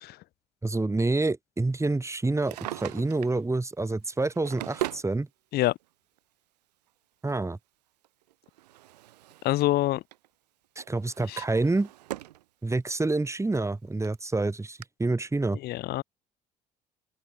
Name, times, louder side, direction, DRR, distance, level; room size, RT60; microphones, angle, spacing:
voice 1, 0.6-5.3 7.2-7.6 10.8-11.9 12.6-15.6, right 2 dB, 15° right, 2.7 m, -27 dB
Drawer open or close, 2.3-3.4 4.1-5.1 6.2-6.3 8.0-9.6 9.9-10.3 10.8-12.4 12.9-13.0 13.7-13.8 14.0-14.1 14.8-14.9, right 15 dB, 75° right, 1.5 m, -39 dB
voice 2, 9.4-10.0 11.3-11.4 15.6-16.0, left 16 dB, 50° left, 0.8 m, -26 dB
open air
figure-of-eight pair, 55°, 21 cm